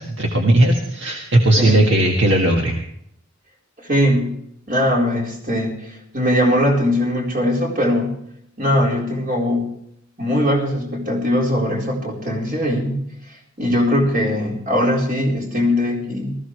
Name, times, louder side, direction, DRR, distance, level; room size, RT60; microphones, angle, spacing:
voice 1, 0.0-2.8, right 1 dB, 65° right, 1 dB, 1.7 m, -17 dB
voice 2, 3.8-4.4 4.7-8.1 8.6-9.7 10.2-12.9 13.6-16.3, left 1 dB, 45° right, -2 dB, 4.4 m, -20 dB
19.5 x 14.5 x 3.3 m, 0.71 s
head